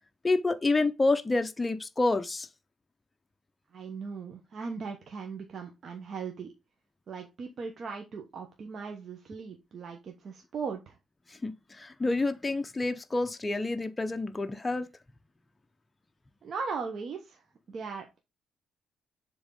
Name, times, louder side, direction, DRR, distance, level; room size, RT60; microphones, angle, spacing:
voice 1, 0.2-2.5 11.3-14.9, left 3 dB, 20° left, 0.6 m, -28 dB
voice 2, 3.7-6.5 7.1-11.0 16.4-17.4 17.7-18.2, right 5 dB, 55° right, 1.0 m, -38 dB
6.9 x 3.6 x 3.9 m
cardioid pair, 90°, 0 cm